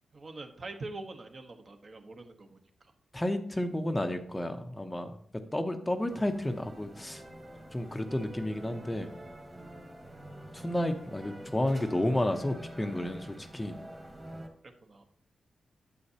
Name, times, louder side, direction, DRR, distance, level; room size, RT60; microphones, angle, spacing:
voice 1, 0.1-2.9 14.8-15.1, right 2 dB, 40° right, 6 dB, 1.0 m, -44 dB
voice 2, 3.1-5.1 5.5-7.2 7.7-9.2 10.5-13.8, left 1 dB, 10° left, 7 dB, 0.6 m, -31 dB
sound 1, 6.1-14.5, right 1 dB, 20° right, 1.6 m, -47 dB
9.8 x 8.0 x 2.8 m, 0.65 s
wide cardioid pair, 130°, 0 cm